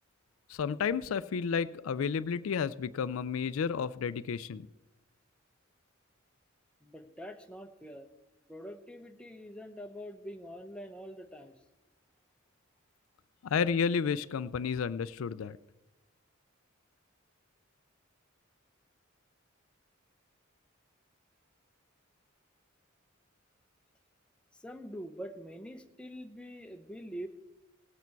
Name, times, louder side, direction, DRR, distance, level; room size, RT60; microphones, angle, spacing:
voice 1, 0.5-4.7 13.4-15.6, left 6 dB, 80° left, 15 dB, 0.4 m, -31 dB
voice 2, 6.8-8.1 8.5-11.5 24.6-27.3, equal, 5° left, 5 dB, 0.8 m, -44 dB
17.5 x 8.2 x 4.5 m, 1.0 s
head